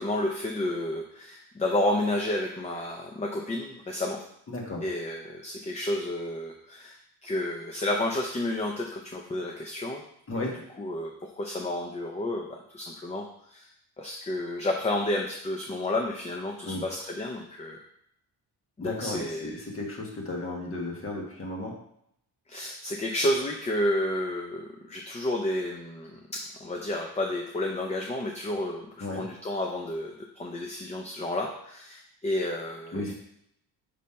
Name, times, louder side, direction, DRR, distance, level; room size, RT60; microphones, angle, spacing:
voice 1, 0.0-4.2 4.8-10.0 10.8-13.7 14.0-17.8 18.8-19.5 22.5-33.1, left 1 dB, 15° left, 1 dB, 0.5 m, -31 dB
voice 2, 4.5-4.8 10.3-10.6 16.6-16.8 18.8-21.8 29.0-29.2 32.9-33.1, left 2 dB, 35° left, -1 dB, 1.4 m, -34 dB
5.4 x 3.2 x 5.6 m, 0.75 s
cardioid pair, 150°, 40 cm